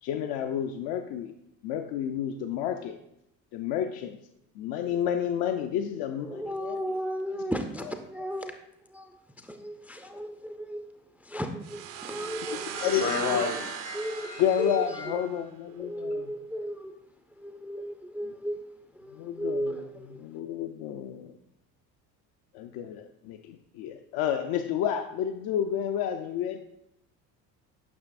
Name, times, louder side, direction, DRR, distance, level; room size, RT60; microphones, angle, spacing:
voice 1, 0.0-1.3 1.6-3.0 3.5-4.2 4.6-6.8 12.5-13.0 13.3-13.4 14.4-16.2 19.1-19.9 20.2-21.3 22.5-26.6, left 9 dB, 50° left, 0.6 m, -30 dB
voice 2, 6.1-8.5 8.9-9.1 9.4-10.8 11.2-12.9 13.9-15.0 15.8-17.0 17.3-18.6 18.9-20.2, equal, 5° right, 0.5 m, -35 dB
sound 1, 11.6-15.4, right 9 dB, 60° right, 0.8 m, -38 dB
voice 3, 12.6-14.4 14.7-15.3, left 5 dB, 80° left, 2.0 m, -32 dB
9.6 x 5.8 x 2.5 m
hypercardioid pair, 60°, 49 cm